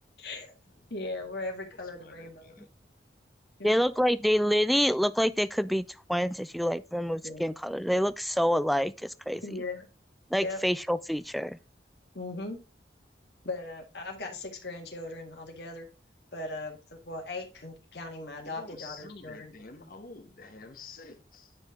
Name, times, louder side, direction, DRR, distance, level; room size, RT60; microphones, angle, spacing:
voice 1, 0.2-0.5 0.9-2.5 3.6-3.8 7.2-7.4 9.4-9.9 10.4-10.6 12.1-12.6 13.4-15.9 16.3-19.5, left 2 dB, 70° left, 1.8 m, -38 dB
voice 2, 1.8-2.7 18.4-21.6, left 3 dB, 55° left, 1.3 m, -49 dB
voice 3, 3.6-9.4 10.3-11.6, equal, ahead, 0.3 m, -27 dB
9.9 x 5.8 x 3.7 m
head